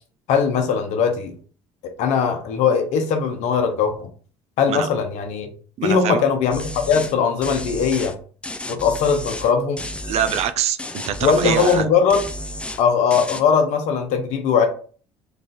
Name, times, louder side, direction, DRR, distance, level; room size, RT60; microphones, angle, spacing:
voice 1, 0.3-1.3 2.0-4.1 4.6-5.5 5.8-8.1 8.7-9.8 11.2-12.2 12.8-14.7, left 6 dB, 70° left, 6 dB, 0.8 m, -20 dB
voice 2, 5.8-6.2 10.0-11.9, right 9 dB, 60° right, 12 dB, 0.4 m, -24 dB
sound 1, 6.5-7.1 7.4-8.1 8.4-9.5 9.8-10.5 10.8-11.8 12.1-12.8 13.1-13.4, left 1 dB, 10° left, 0.4 m, -32 dB
3.2 x 2.5 x 3.9 m, 0.42 s
supercardioid pair, 85°, 12 cm